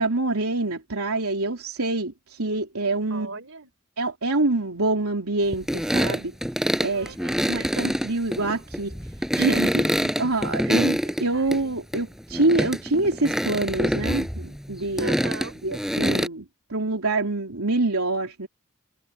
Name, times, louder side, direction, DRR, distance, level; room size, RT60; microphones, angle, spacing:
voice 1, 0.0-3.4 4.0-6.3 6.8-7.1 7.5-8.9 9.3-15.2 15.6-18.5, right 2 dB, 85° right, 3.2 m, -26 dB
voice 2, 3.1-3.7 6.9-7.6 10.6-10.8 11.3-11.8 15.0-15.6, right 3 dB, 65° right, 5.4 m, -39 dB
sound 1, 5.5-11.6 11.9-16.3, equal, ahead, 7.0 m, -25 dB
head